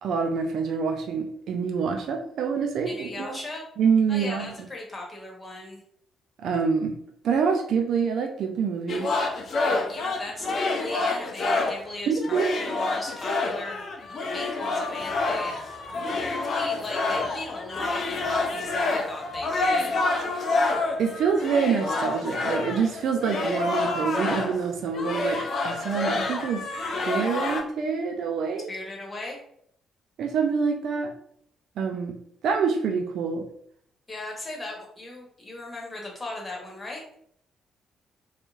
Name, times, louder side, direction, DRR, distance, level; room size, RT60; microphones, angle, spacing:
voice 1, 0.0-3.4 3.8-4.5 6.4-7.0 7.2-9.1 12.1-12.5 21.0-26.6 27.0-28.7 30.2-31.1 31.8-32.2 32.4-33.5, right 6 dB, 55° right, 4 dB, 0.4 m, -26 dB
voice 2, 2.8-3.6 4.1-5.8 9.5-13.9 14.2-15.8 16.1-20.0 28.7-29.4 34.1-37.0, left 2 dB, 25° left, -1 dB, 1.1 m, -38 dB
sound 1, 8.9-11.9 12.2-24.7 24.9-27.6, left 3 dB, 50° left, 0.5 m, -28 dB
Crowd, 14.6-19.9, right 1 dB, 30° right, 1.2 m, -46 dB
3.1 x 3.0 x 2.4 m, 0.67 s
figure-of-eight pair, 40°, 0 cm